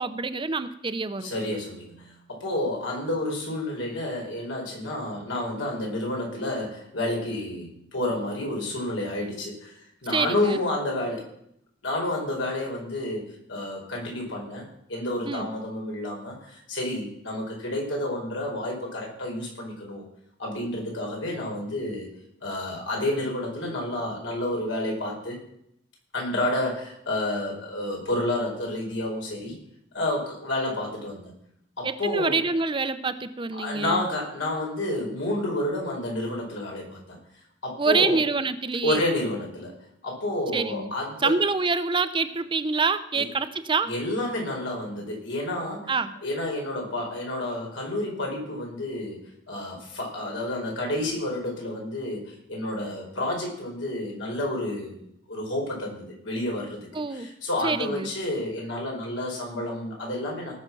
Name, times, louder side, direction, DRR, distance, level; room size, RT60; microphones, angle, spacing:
voice 1, 0.0-1.3 10.1-10.6 15.3-15.5 31.8-34.0 37.8-39.0 40.5-40.9 41.2-43.9 45.9-46.1 56.9-57.3 57.6-58.1, right 4 dB, 25° right, 11 dB, 0.6 m, -26 dB
voice 2, 1.2-9.7 10.0-11.3 11.8-20.0 20.4-22.1 22.4-25.4 26.1-29.5 29.9-31.3 31.8-32.4 33.5-37.2 37.6-38.2 38.8-41.4 43.1-43.2 43.8-45.9 46.2-49.2 49.5-56.8 57.1-60.5, left 1 dB, 90° left, -1 dB, 5.1 m, -30 dB
19.0 x 6.6 x 6.1 m, 0.73 s
head